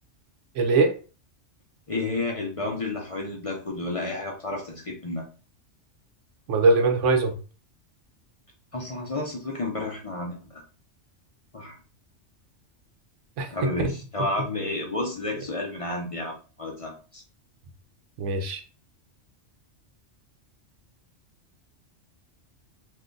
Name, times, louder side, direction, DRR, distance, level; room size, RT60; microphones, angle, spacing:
voice 1, 0.6-1.0 6.5-7.4 13.4-13.5 18.2-18.6, right 3 dB, 80° right, 5 dB, 1.0 m, -21 dB
voice 2, 1.9-5.2 8.7-10.6 11.5-11.8 13.5-17.2, left 2 dB, 40° left, -1 dB, 0.5 m, -31 dB
2.7 x 2.4 x 3.7 m, 0.35 s
omnidirectional pair, 1.3 m